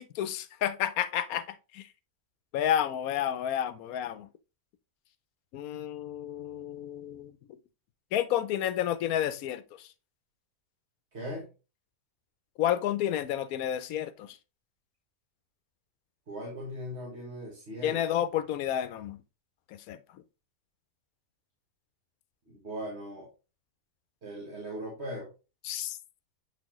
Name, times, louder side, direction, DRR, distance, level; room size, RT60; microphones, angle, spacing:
voice 1, 0.0-1.9 2.5-4.3 5.5-7.3 8.1-9.9 12.6-14.4 17.8-19.2 19.7-20.0 25.6-26.0, left 10 dB, 85° left, 1.1 m, -30 dB
voice 2, 11.1-11.5 16.3-18.0 22.5-23.3 24.2-25.3, equal, 50° right, 1.9 m, -39 dB
7.8 x 4.1 x 3.0 m
omnidirectional pair, 1.5 m